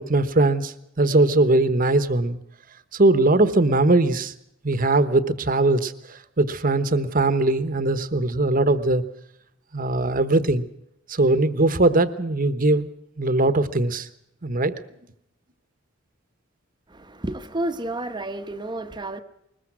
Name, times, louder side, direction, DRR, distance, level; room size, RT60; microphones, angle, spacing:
voice 1, 0.0-2.4 2.9-4.3 4.6-9.0 9.7-10.7 11.1-12.9 13.2-14.1 14.4-14.7, right 2 dB, 45° right, 1.1 m, -20 dB
voice 2, 16.9-19.2, right 1 dB, 20° right, 1.0 m, -31 dB
21.0 x 20.5 x 6.1 m
head